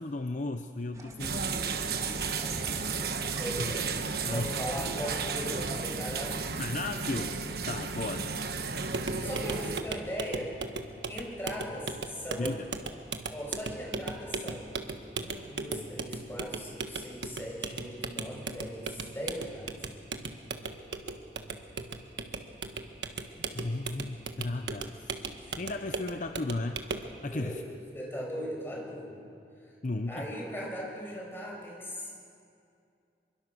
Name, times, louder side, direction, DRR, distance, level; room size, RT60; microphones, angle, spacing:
voice 1, 0.0-1.6 3.6-3.8 4.2-4.5 6.6-7.4 7.6-8.4 12.4-12.7 23.5-25.2 25.6-26.8 27.2-27.6 29.8-30.3, left 2 dB, 45° left, 7 dB, 0.7 m, -35 dB
sound 1, 0.9-6.0, right 1 dB, 20° right, 1.9 m, -45 dB
sound 2, 1.2-9.8, right 5 dB, 60° right, 1.2 m, -33 dB
voice 2, 3.4-3.9 4.3-6.5 9.2-10.5 11.1-12.6 13.3-14.7 15.1-19.8 25.4-25.6 27.2-27.6 27.9-29.2 29.7-29.8 30.1-32.1, equal, 15° left, -2 dB, 5.6 m, -39 dB
sound 3, 8.9-27.1, right 4 dB, 90° right, 1.4 m, -38 dB
25.5 x 23.0 x 6.3 m, 2.4 s
head